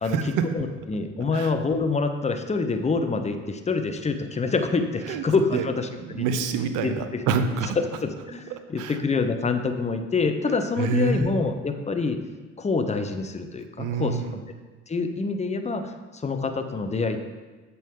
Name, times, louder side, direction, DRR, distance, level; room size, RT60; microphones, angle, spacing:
voice 1, 0.0-0.5 1.3-1.5 5.1-5.2 5.5-5.6 6.0-7.8 8.8-9.0 10.8-11.3 13.8-14.4, right 5 dB, 60° right, 8 dB, 0.7 m, -27 dB
voice 2, 0.5-6.3 6.8-7.2 7.8-12.2 12.6-14.2 14.9-17.2, left 4 dB, 20° left, 7 dB, 0.6 m, -26 dB
7.3 x 4.1 x 3.6 m, 1.3 s
hypercardioid pair, 55°, 36 cm